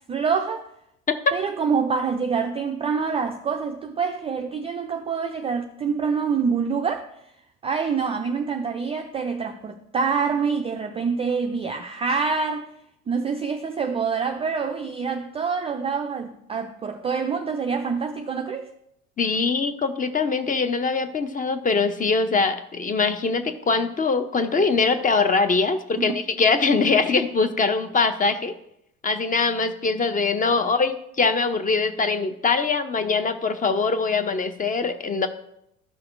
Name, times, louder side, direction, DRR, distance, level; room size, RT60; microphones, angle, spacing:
voice 1, 0.1-0.7 1.3-7.1 7.6-12.7 13.1-18.7 26.0-26.2, right 5 dB, 15° right, 0.4 m, -26 dB
voice 2, 19.2-28.5 29.0-35.3, left 4 dB, 20° left, 0.7 m, -22 dB
13.5 x 5.8 x 2.6 m
figure-of-eight pair, 70°, 43 cm